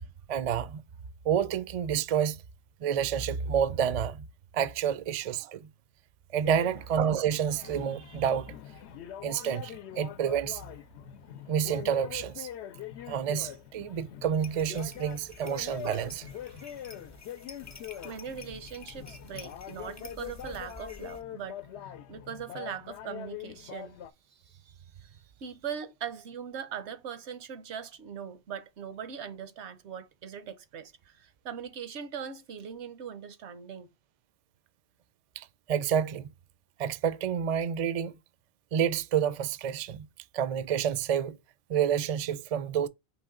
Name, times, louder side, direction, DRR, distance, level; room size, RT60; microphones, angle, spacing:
voice 1, 0.3-0.8 1.2-2.4 2.8-4.3 4.5-5.7 6.3-8.5 9.2-10.6 11.5-12.5 13.1-16.3 35.4-36.3 36.8-38.1 38.7-40.1 40.3-41.4 41.7-42.9, right 8 dB, 55° right, 0.4 m, -29 dB
sound 1, 6.4-24.1, left 10 dB, 80° left, 0.8 m, -43 dB
sound 2, 14.4-21.2, left 3 dB, 25° left, 0.4 m, -50 dB
voice 2, 18.0-24.0 24.5-24.7 25.0-33.9, right 7 dB, 85° right, 1.0 m, -41 dB
4.6 x 3.0 x 3.6 m
omnidirectional pair, 1.1 m